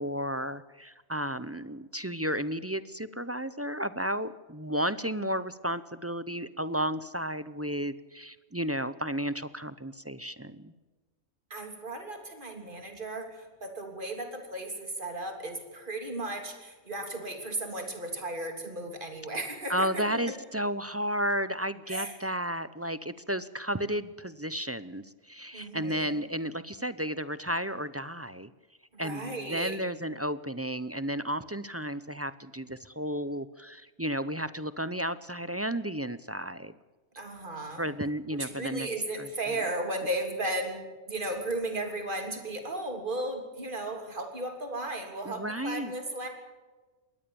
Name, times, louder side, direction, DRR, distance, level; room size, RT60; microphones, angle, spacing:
voice 1, 0.0-10.7 19.7-28.5 29.0-36.7 37.8-38.9 39.2-39.3 45.2-45.9, equal, 15° right, 14 dB, 0.5 m, -33 dB
voice 2, 11.5-20.4 21.9-22.1 25.5-26.2 28.9-29.8 37.2-37.8 38.3-46.3, right 1 dB, 45° right, 4 dB, 3.4 m, -35 dB
22.0 x 18.0 x 7.0 m, 1.3 s
omnidirectional pair, 1.2 m